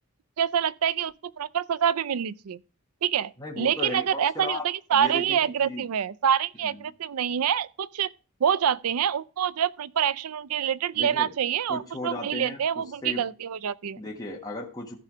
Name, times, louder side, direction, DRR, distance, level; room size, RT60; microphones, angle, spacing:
voice 1, 0.4-2.6 3.0-8.1 8.4-14.0, right 8 dB, 85° right, 0.5 m, -26 dB
voice 2, 3.4-4.6 4.9-5.8 6.6-6.8 10.9-11.3 11.7-13.2 14.0-15.0, left 2 dB, 15° left, 1.5 m, -36 dB
14.5 x 5.6 x 4.9 m
head